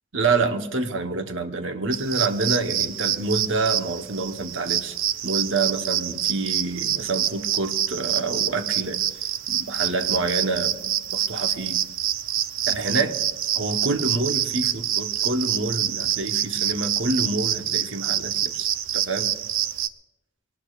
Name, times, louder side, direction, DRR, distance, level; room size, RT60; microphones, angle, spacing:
voice 1, 0.1-4.9 5.2-9.0 9.5-11.8 12.7-13.2 13.5-18.7 18.9-19.3, right 3 dB, 70° right, 5 dB, 1.2 m, -27 dB
sound 1, 1.9-19.9, right 11 dB, 90° right, 0.6 m, -26 dB
22.0 x 18.5 x 2.5 m, 0.98 s
head